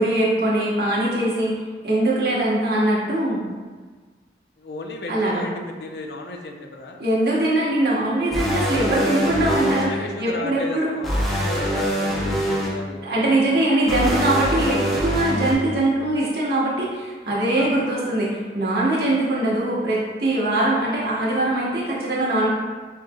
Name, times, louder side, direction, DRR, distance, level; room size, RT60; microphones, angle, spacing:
voice 1, 0.0-3.4 5.1-5.4 7.0-9.9 10.2-10.9 13.0-22.5, right 1 dB, 60° right, -6 dB, 1.1 m, -22 dB
voice 2, 4.6-7.0 9.6-13.6 17.5-17.8, left 2 dB, 65° left, 3 dB, 0.5 m, -34 dB
sound 1, 8.3-9.8 11.0-12.7 13.9-15.5, equal, ahead, 0.6 m, -24 dB
6.3 x 3.0 x 2.2 m, 1.4 s
head